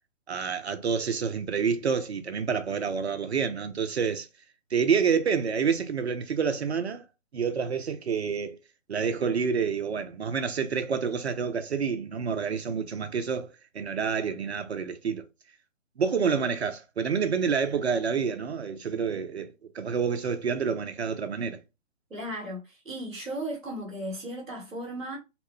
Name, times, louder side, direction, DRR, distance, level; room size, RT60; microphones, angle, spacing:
voice 1, 0.3-4.3 4.7-7.0 7.3-8.6 8.9-15.2 16.0-21.6, right 6 dB, 55° right, 0.5 m, -28 dB
voice 2, 22.1-25.2, right 1 dB, ahead, 0.6 m, -36 dB
2.9 x 2.1 x 3.1 m
figure-of-eight pair, 140°, 39 cm